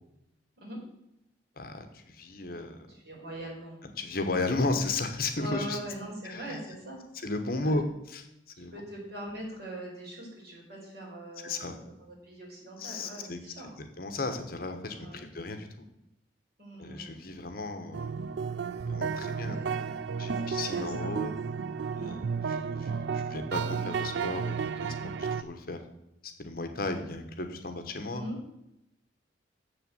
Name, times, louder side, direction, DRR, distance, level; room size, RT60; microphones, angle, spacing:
voice 1, 1.6-2.9 4.0-5.8 6.2-6.6 7.2-8.3 8.6-8.8 11.4-11.8 12.8-13.4 13.8-15.9 16.8-18.2 18.9-19.6 20.2-21.3 22.0-22.2 22.5-25.8 26.2-28.2, left 2 dB, 55° left, 7 dB, 1.2 m, -34 dB
voice 2, 2.9-3.8 5.4-7.0 7.5-7.8 8.6-13.7 14.9-15.2 16.6-17.4 19.2-19.9 20.3-21.1 21.9-22.1 28.1-28.4, right 1 dB, 60° right, -3 dB, 4.6 m, -42 dB
sound 1, 17.9-25.4, right 6 dB, 75° right, 0.4 m, -32 dB
7.4 x 6.8 x 7.8 m, 0.84 s
head